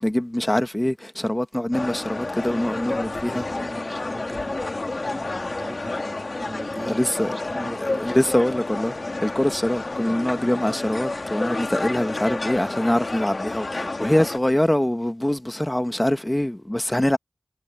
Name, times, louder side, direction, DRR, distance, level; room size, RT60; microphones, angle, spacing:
voice 1, 0.0-3.4 6.8-7.3 7.8-8.9 9.2-17.2, left 1 dB, 20° left, 1.0 m, -24 dB
sound 1, 1.7-14.4, left 2 dB, 70° left, 2.0 m, -30 dB
voice 2, 2.7-8.3, right 2 dB, 50° right, 3.4 m, -41 dB
wide cardioid pair, 50°, 0 cm